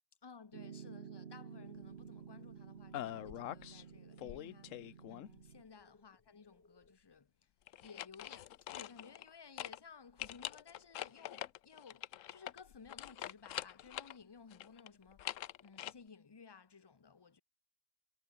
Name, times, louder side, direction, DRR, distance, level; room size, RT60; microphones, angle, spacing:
voice 1, 0.2-7.3 7.8-17.4, left 5 dB, 25° left, 0.7 m, -57 dB
Piano, 0.5-5.6, right 7 dB, 50° right, 1.2 m, -52 dB
sound 1, 1.6-7.0, left 3 dB, 55° left, 3.4 m, -70 dB
sound 2, 2.9-3.8 4.2-5.5 7.7-9.3 9.6-9.8 10.2-14.2 14.5-15.9, left 12 dB, 85° left, 1.0 m, -44 dB
omnidirectional pair, 1.3 m